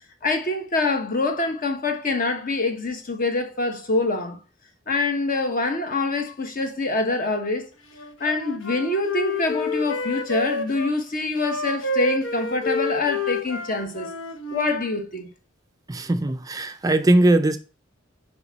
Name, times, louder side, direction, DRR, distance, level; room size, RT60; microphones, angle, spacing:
voice 1, 0.2-4.4 4.9-7.7 8.2-14.1 14.5-15.3, left 3 dB, 45° left, 1.2 m, -25 dB
Wind instrument woodwind instrument, 8.0-10.9 11.4-14.8, left 2 dB, 75° left, 1.2 m, -29 dB
voice 2, 15.9-17.6, right 1 dB, 20° right, 0.4 m, -20 dB
6.9 x 5.2 x 4.1 m
head